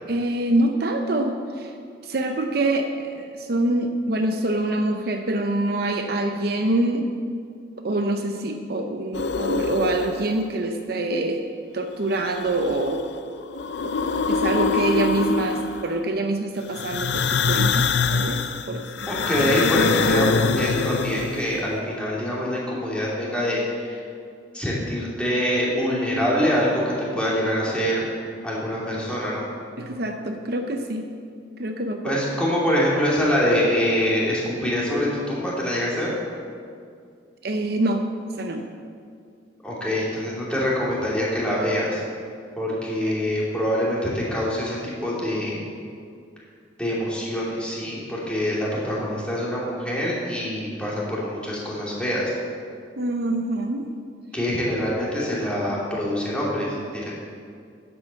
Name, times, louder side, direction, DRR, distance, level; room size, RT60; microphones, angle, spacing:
voice 1, 0.1-1.7 2.0-7.1 7.8-11.4 11.7-13.1 13.8-13.9 14.3-19.1 29.8-31.1 31.6-32.2 37.4-38.0 38.4-38.7 43.0-43.1 53.0-53.9, right 2 dB, 55° right, 4 dB, 0.7 m, -25 dB
sound 1, 9.1-10.4 12.1-13.1 13.4-16.0 16.7-21.6, left 4 dB, 65° left, 0.5 m, -24 dB
voice 2, 19.1-20.3 20.6-24.0 24.5-28.0 28.4-29.5 32.0-36.1 39.6-42.0 42.6-45.6 46.8-52.3 54.3-56.8 57.0-57.1, equal, 5° left, -6 dB, 2.8 m, -25 dB
10.5 x 8.1 x 7.5 m, 2.3 s
head